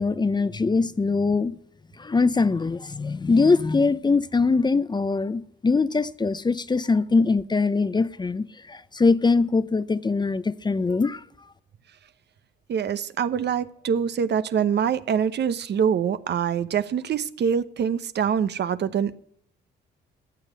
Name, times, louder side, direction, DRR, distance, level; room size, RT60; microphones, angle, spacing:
voice 1, 0.0-1.5 2.0-11.2, left 4 dB, 20° left, 0.7 m, -22 dB
voice 2, 12.7-19.2, right 7 dB, 60° right, 0.9 m, -24 dB
14.0 x 8.2 x 9.4 m
cardioid pair, 90°, 20 cm